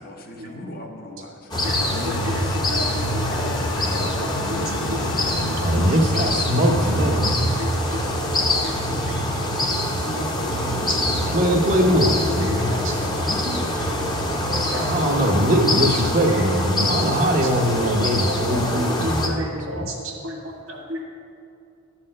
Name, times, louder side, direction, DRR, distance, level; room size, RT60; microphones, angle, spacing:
voice 1, 0.0-2.6 3.3-5.6 8.4-9.6 10.0-10.9 12.8-13.8, left 1 dB, 45° left, 3 dB, 1.0 m, -38 dB
sound 1, 1.5-19.3, left 1 dB, 20° left, 0.9 m, -24 dB
sound 2, 1.6-10.5, left 6 dB, 60° left, 0.4 m, -37 dB
voice 2, 1.6-5.0 5.2-5.3 7.6-8.0 8.6-8.8 9.0-9.2 9.6-9.8 10.1-10.3 10.9-11.0 11.2-11.3 11.9-12.1 12.4-13.3 13.8-13.9 14.3-15.2 16.3-16.5 16.8-16.9 17.3-17.5 17.8-21.0, equal, 80° right, 0 dB, 1.8 m, -33 dB
voice 3, 5.6-7.5 11.3-12.7 14.8-19.9, equal, 40° right, 0 dB, 0.8 m, -21 dB
11.5 x 4.3 x 7.6 m, 2.6 s
head